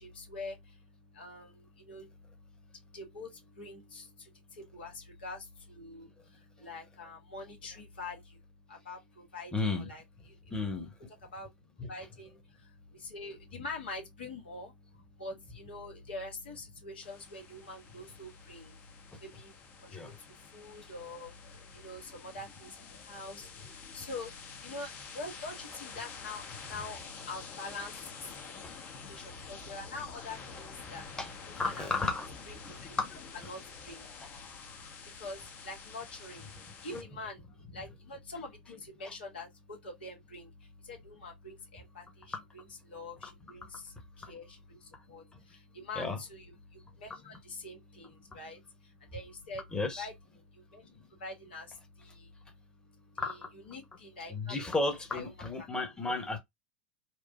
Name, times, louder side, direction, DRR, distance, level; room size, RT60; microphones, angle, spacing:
voice 1, 0.0-8.4 8.7-10.4 11.2-31.1 31.4-31.9 32.5-33.0 33.4-49.6 50.0-54.8 55.1-55.7, left 2 dB, 75° left, 1.4 m, -46 dB
voice 2, 9.5-9.9 10.5-10.9 19.9-20.1 31.2-31.3 31.6-32.3 32.6-33.1 36.9-37.0 46.0-46.2 49.7-50.1 54.3-56.4, left 3 dB, 15° left, 1.2 m, -33 dB
sound 1, 17.0-37.0, left 5 dB, 40° left, 1.0 m, -48 dB
4.5 x 2.3 x 2.6 m
figure-of-eight pair, 80°, 6 cm